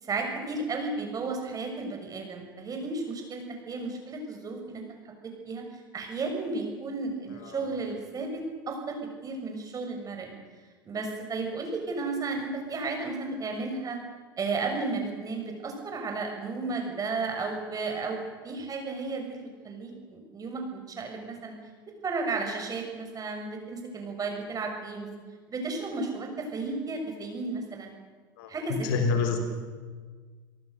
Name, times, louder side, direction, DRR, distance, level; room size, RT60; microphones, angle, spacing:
voice 1, 0.0-4.8 5.4-5.6 5.9-10.3 10.8-14.0 14.4-21.5 22.0-25.1 25.5-27.9 28.5-28.9, right 3 dB, 30° right, 3 dB, 6.7 m, -33 dB
voice 2, 28.4-29.4, left 5 dB, 70° left, 6 dB, 3.9 m, -28 dB
29.0 x 18.5 x 6.8 m, 1.5 s
hypercardioid pair, 80°, 12 cm